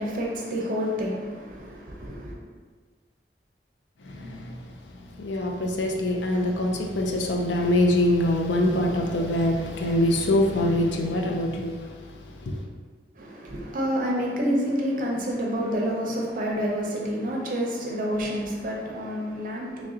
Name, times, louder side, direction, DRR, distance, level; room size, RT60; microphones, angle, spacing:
voice 1, 0.0-2.3 13.1-19.9, equal, 50° right, 0.7 m, -28 dB
voice 2, 4.0-4.6 5.2-12.6, left 1 dB, 90° left, 0.5 m, -24 dB
3.1 x 2.6 x 3.8 m
head